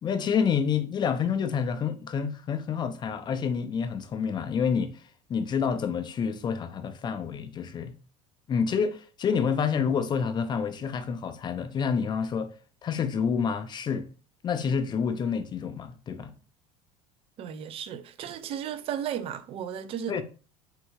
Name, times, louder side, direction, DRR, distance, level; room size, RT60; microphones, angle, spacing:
voice 1, 0.0-4.9 5.3-7.9 8.5-12.5 12.8-14.1 14.4-16.3 20.1-20.2, left 6 dB, 25° left, 0.4 m, -28 dB
voice 2, 17.4-20.2, right 9 dB, 35° right, 0.3 m, -34 dB
3.5 x 2.2 x 3.0 m
supercardioid pair, 110°, 16 cm